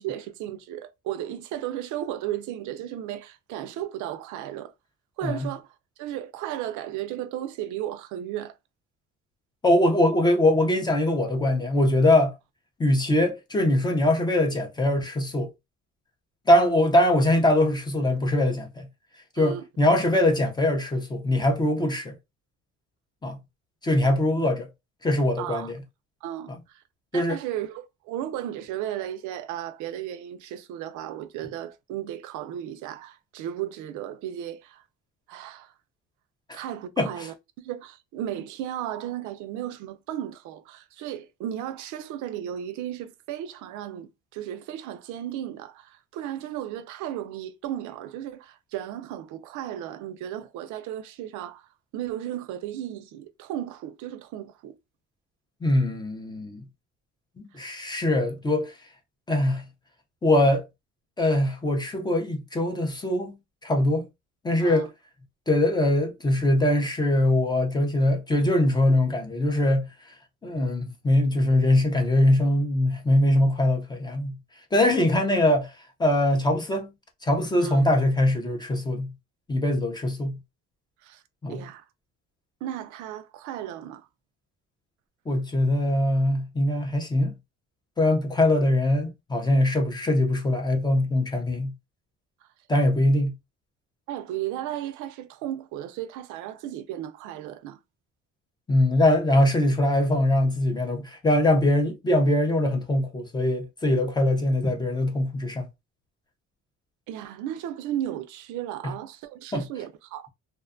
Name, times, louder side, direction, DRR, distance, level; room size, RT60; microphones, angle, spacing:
voice 1, 0.0-4.7 5.2-5.7 6.0-8.6 19.4-19.6 25.4-25.7 26.2-26.8 27.1-34.8 35.3-35.7 36.5-51.7 51.9-54.7 64.6-64.9 77.6-77.8 81.0-81.2 81.5-81.8 82.6-84.1 94.1-97.8 107.1-110.3, right 11 dB, 80° right, 0.4 m, -35 dB
voice 2, 9.6-12.3 12.8-15.5 16.5-18.9 19.4-22.1 23.2-23.4 23.8-24.7 25.0-25.8 27.1-27.4 36.5-36.6 37.0-37.3 55.6-56.6 57.4-58.7 59.3-59.6 60.2-60.6 61.2-63.3 63.6-64.1 64.4-64.9 65.5-69.8 70.4-74.3 74.7-75.7 76.0-76.9 77.2-79.1 79.5-80.4 81.4-81.6 85.3-87.3 88.0-91.7 92.7-93.3 98.7-105.7 108.8-108.9 109.5-109.6, left 1 dB, 15° left, 0.4 m, -22 dB
2.6 x 2.1 x 2.4 m
cardioid pair, 155°, 29 cm